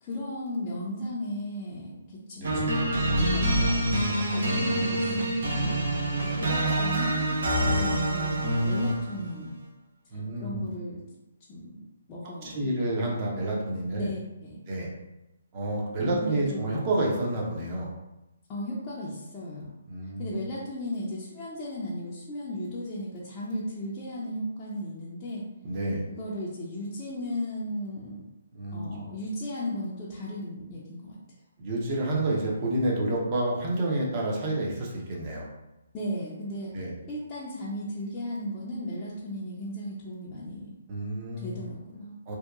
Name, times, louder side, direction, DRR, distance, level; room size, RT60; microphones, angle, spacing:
voice 1, 0.0-5.7 6.2-7.3 7.7-9.6 10.1-11.0 11.5-11.7 12.1-12.7 13.9-14.6 16.0-16.6 18.5-19.7 20.2-25.4 26.2-28.2 28.7-31.2 35.9-36.7 37.0-40.7 41.4-42.1, left 1 dB, 25° left, -7 dB, 0.5 m, -36 dB
voice 2, 2.4-2.7 4.4-5.2 7.6-7.9 10.1-10.7 12.2-14.1 14.7-14.9 15.5-17.9 19.9-20.3 25.6-26.0 28.5-29.0 31.6-35.5 36.7-36.9 40.9-41.6 42.3-42.4, right 1 dB, 30° right, -3 dB, 0.7 m, -29 dB
sound 1, 2.4-9.2, right 1 dB, 70° right, 0.7 m, -26 dB
2.7 x 2.2 x 2.3 m, 0.95 s
hypercardioid pair, 150°, 0 cm